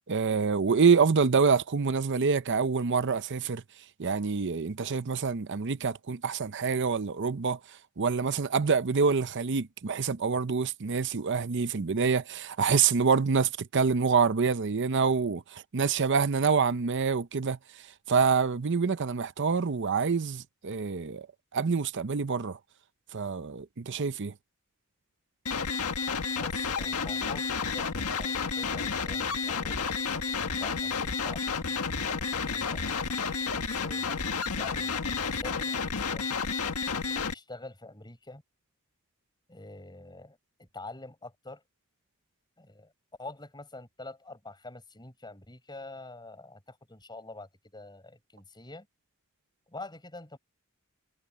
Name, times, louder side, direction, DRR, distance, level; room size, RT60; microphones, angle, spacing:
voice 1, 0.1-3.6 4.0-7.6 8.0-17.6 18.1-21.3 21.5-22.6 23.1-24.3, right 5 dB, 55° right, 0.6 m, -26 dB
sound 1, 25.5-37.3, left 5 dB, 90° left, 1.6 m, -31 dB
voice 2, 26.3-29.9 30.5-32.8 33.6-34.1 34.5-35.0 35.4-36.3 37.0-38.4 39.5-41.6 42.6-42.9 43.2-48.9 49.7-50.4, left 2 dB, 20° left, 6.6 m, -46 dB
head